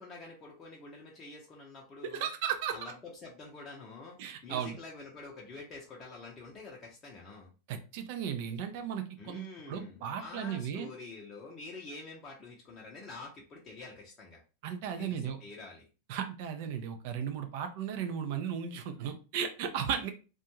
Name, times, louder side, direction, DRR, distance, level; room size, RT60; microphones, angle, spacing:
voice 1, 0.0-2.3 2.7-7.5 9.2-14.4 15.0-15.8, left 3 dB, 25° left, -3 dB, 0.6 m, -47 dB
voice 2, 2.0-2.7 4.2-4.8 7.7-10.9 14.6-15.4 16.1-20.1, right 8 dB, 50° right, 7 dB, 0.5 m, -35 dB
2.5 x 2.2 x 2.9 m, 0.34 s
figure-of-eight pair, 90°, 0 cm